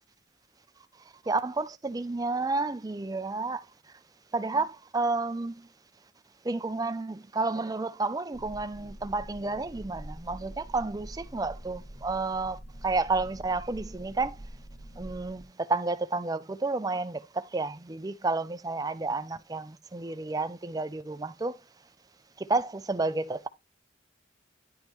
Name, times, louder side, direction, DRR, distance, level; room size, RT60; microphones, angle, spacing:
voice 1, 1.3-3.6 4.3-5.7 6.4-14.4 15.0-21.6 22.4-23.5, right 3 dB, 20° right, 0.4 m, -31 dB
sound 1, 8.3-15.5, right 1 dB, 50° left, 1.8 m, -45 dB
10.5 x 5.2 x 3.1 m
head